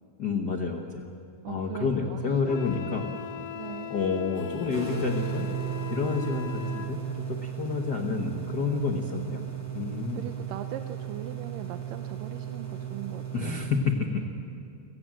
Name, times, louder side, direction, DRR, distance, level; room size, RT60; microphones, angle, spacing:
voice 1, 0.2-1.1 1.5-3.1 3.9-5.5 5.9-9.4 9.7-10.2 13.3-14.2, left 5 dB, 80° left, 3 dB, 0.9 m, -29 dB
voice 2, 1.4-2.6 3.5-3.9 10.1-13.5, right 10 dB, 80° right, 7 dB, 2.3 m, -40 dB
Wind instrument woodwind instrument, 2.5-6.9, left 10 dB, 55° left, 2.2 m, -39 dB
sound 1, 4.3-8.5 8.7-8.8 9.2-9.3, left 2 dB, 35° left, 3.0 m, -46 dB
sound 2, 4.7-13.7, right 9 dB, 15° right, 1.8 m, -35 dB
30.0 x 18.0 x 7.6 m, 2.6 s
omnidirectional pair, 4.0 m